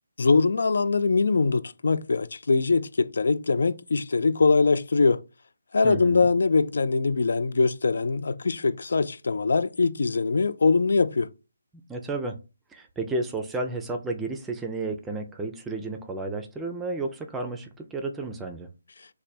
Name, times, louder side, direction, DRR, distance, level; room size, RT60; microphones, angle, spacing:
voice 1, 0.2-5.2 5.7-11.3, left 4 dB, 65° left, 0.3 m, -22 dB
voice 2, 5.8-6.3 11.9-12.4 12.7-18.7, right 2 dB, 5° right, 0.4 m, -32 dB
3.3 x 2.2 x 4.2 m
hypercardioid pair, 160°, 0 cm